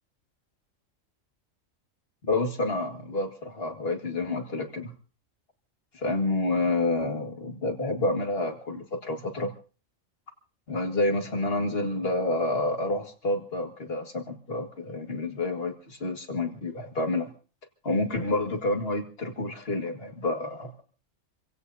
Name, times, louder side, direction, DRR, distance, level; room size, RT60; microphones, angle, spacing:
voice 1, 2.2-4.9 5.9-9.5 10.7-17.3 17.8-20.7, left 2 dB, 50° left, 5 dB, 2.1 m, -29 dB
28.0 x 16.5 x 2.7 m, 0.36 s
omnidirectional pair, 1.3 m